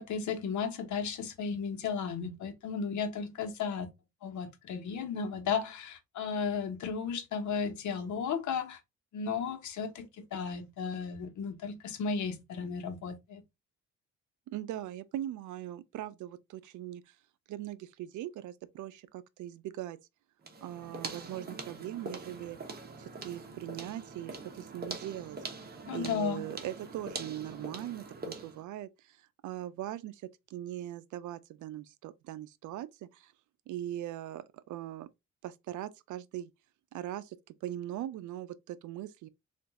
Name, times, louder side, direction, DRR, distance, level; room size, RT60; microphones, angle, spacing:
voice 1, 0.0-3.9 4.2-8.8 9.1-13.4 25.9-26.4, left 6 dB, 70° left, 1.0 m, -34 dB
voice 2, 14.5-17.1 17.5-20.0 20.6-22.6 23.0-25.4 25.9-29.2 29.4-30.2 30.5-33.3 33.7-35.1 35.4-36.5 36.9-39.3, right 13 dB, 75° right, 0.5 m, -40 dB
sound 1, 20.4-28.6, right 3 dB, 30° right, 1.0 m, -43 dB
3.9 x 2.5 x 3.4 m
cardioid pair, 90°, 30 cm